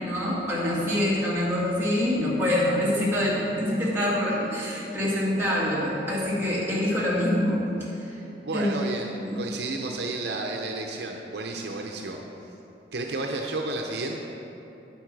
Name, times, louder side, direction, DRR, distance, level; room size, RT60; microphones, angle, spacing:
voice 1, 0.0-7.6 8.1-8.2 8.5-8.8 9.2-9.4, left 1 dB, 15° right, -8 dB, 2.2 m, -25 dB
voice 2, 8.4-12.2 12.9-14.2, right 2 dB, 70° right, 1 dB, 0.7 m, -31 dB
9.3 x 8.7 x 4.7 m, 3.0 s
head